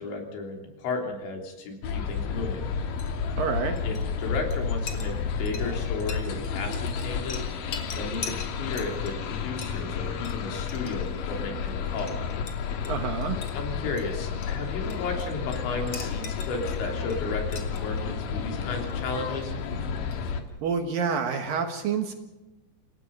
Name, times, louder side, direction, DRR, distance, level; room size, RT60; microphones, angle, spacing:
voice 1, 0.0-2.6 3.8-7.4 8.0-12.2 13.5-19.5, left 3 dB, 80° left, 2 dB, 5.6 m, -34 dB
sound 1, 1.8-20.4, left 6 dB, 60° left, 2.9 m, -31 dB
Chink clink, 2.9-20.6, left 5 dB, 40° left, 2.6 m, -45 dB
voice 2, 3.4-3.8 12.9-13.4 20.6-22.1, right 6 dB, 65° right, 6 dB, 2.7 m, -28 dB
28.0 x 17.5 x 5.4 m, 1.0 s
omnidirectional pair, 5.2 m